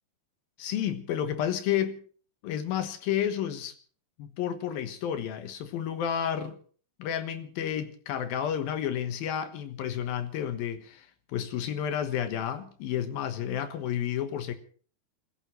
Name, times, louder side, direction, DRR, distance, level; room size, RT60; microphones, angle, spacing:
voice 1, 0.6-2.0 2.4-3.7 4.2-6.6 7.0-14.6, left 9 dB, 75° left, 3.1 m, -31 dB
28.0 x 15.5 x 3.2 m
omnidirectional pair, 4.3 m